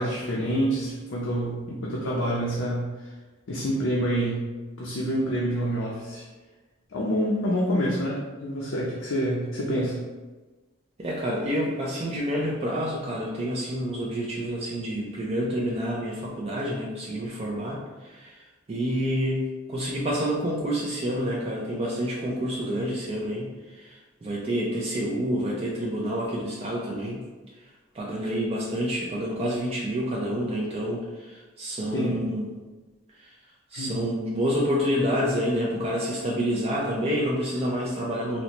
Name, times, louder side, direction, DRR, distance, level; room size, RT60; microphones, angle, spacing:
voice 1, 0.0-3.1 3.5-4.5 4.8-6.2 6.9-10.0 31.9-32.3 33.7-34.0, equal, 90° left, -5 dB, 0.6 m, -27 dB
voice 2, 11.0-18.4 18.7-19.4 19.7-27.2 27.9-32.5 33.2-33.3 33.7-38.4, equal, 30° right, -4 dB, 0.4 m, -28 dB
4.1 x 2.1 x 2.9 m, 1.2 s
head